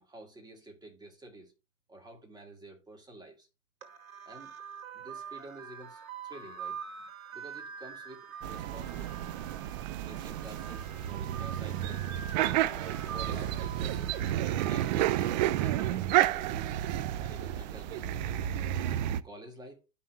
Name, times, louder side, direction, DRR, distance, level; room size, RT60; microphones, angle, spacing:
voice 1, 0.0-1.5 1.9-3.5 4.3-4.5 4.9-6.8 7.3-9.3 10.0-12.1 12.6-14.2 14.7-16.9 17.2-18.3 19.1-19.9, right 1 dB, 10° right, 2.0 m, -50 dB
sound 1, 3.8-15.9, right 7 dB, 80° right, 2.3 m, -45 dB
sound 2, 8.4-19.2, right 12 dB, 35° right, 0.4 m, -31 dB
13.0 x 5.8 x 2.3 m
hypercardioid pair, 120°, 41 cm